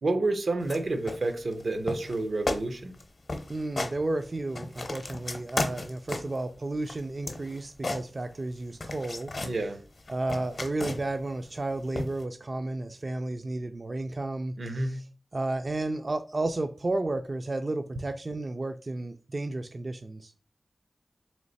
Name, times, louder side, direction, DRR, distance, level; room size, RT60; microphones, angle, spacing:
voice 1, 0.0-2.9 9.4-9.8 14.6-14.9, right 2 dB, 80° right, 0.6 m, -29 dB
sound 1, 0.6-0.8 1.1-1.6 1.9-2.2 2.5-2.6 2.9-3.0 3.3-4.0 4.3-6.4 6.8-8.5 8.8-9.6 10.0-11.2 12.0-12.2, left 2 dB, 55° left, 0.6 m, -34 dB
voice 2, 3.5-9.6 10.1-15.0 15.3-20.3, right 2 dB, 45° right, 0.3 m, -32 dB
3.2 x 3.1 x 4.0 m
wide cardioid pair, 70°, 0 cm